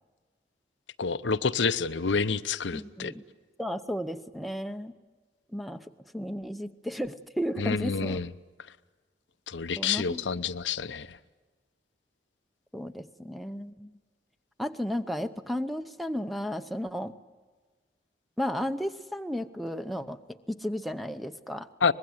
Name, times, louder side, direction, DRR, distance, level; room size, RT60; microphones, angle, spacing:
voice 1, 1.0-3.1 7.6-8.3 9.5-11.2 21.8-21.9, left 5 dB, 85° left, 0.7 m, -28 dB
voice 2, 2.7-3.2 3.6-4.9 5.5-8.2 9.8-10.2 12.7-13.9 14.6-17.1 18.4-20.2 20.5-21.7, equal, ahead, 0.7 m, -34 dB
24.5 x 21.0 x 9.6 m
head